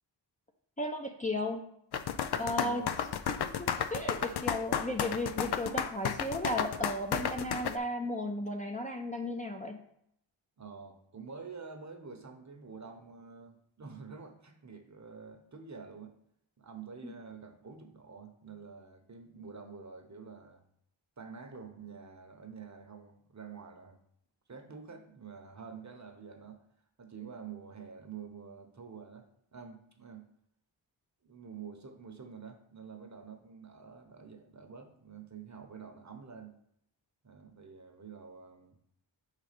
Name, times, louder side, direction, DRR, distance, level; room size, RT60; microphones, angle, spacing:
voice 1, 0.8-1.6 2.4-2.8 3.4-9.8 17.0-17.1, left 1 dB, 15° left, 2 dB, 0.7 m, -35 dB
sound 1, 1.9-7.8, left 8 dB, 60° left, 0.5 m, -32 dB
voice 2, 2.3-2.9 3.3-3.5 10.6-16.1 16.6-20.6 21.2-24.0 24.5-26.6 27.0-30.3 31.2-36.5 37.2-38.8, right 5 dB, 35° right, 5 dB, 1.0 m, -48 dB
4.9 x 4.2 x 5.0 m, 0.72 s
cardioid pair, 50°, 46 cm